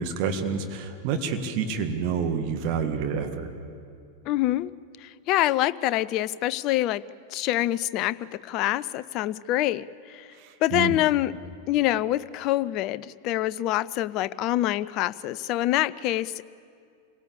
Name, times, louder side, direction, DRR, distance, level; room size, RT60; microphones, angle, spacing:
voice 1, 0.0-3.5 10.4-11.0, right 6 dB, 45° right, 6 dB, 1.8 m, -28 dB
voice 2, 4.3-4.7 5.0-10.3 10.6-11.3 11.7-16.4, left 15 dB, 40° left, 18 dB, 0.5 m, -26 dB
26.5 x 18.0 x 8.5 m, 2.4 s
figure-of-eight pair, 90°, 0 cm